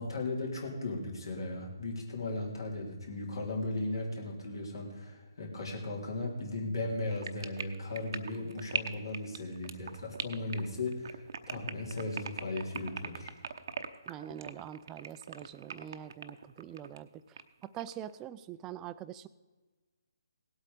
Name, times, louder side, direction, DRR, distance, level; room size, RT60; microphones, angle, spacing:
voice 1, 0.0-13.3, left 2 dB, 70° left, -1 dB, 3.7 m, -37 dB
sound 1, 7.1-17.0 17.4-18.1, right 6 dB, 55° right, 0.9 m, -39 dB
voice 2, 14.1-19.3, right 11 dB, 15° right, 15 dB, 0.4 m, -44 dB
18.0 x 8.2 x 5.2 m, 1.3 s
figure-of-eight pair, 145°, 2 cm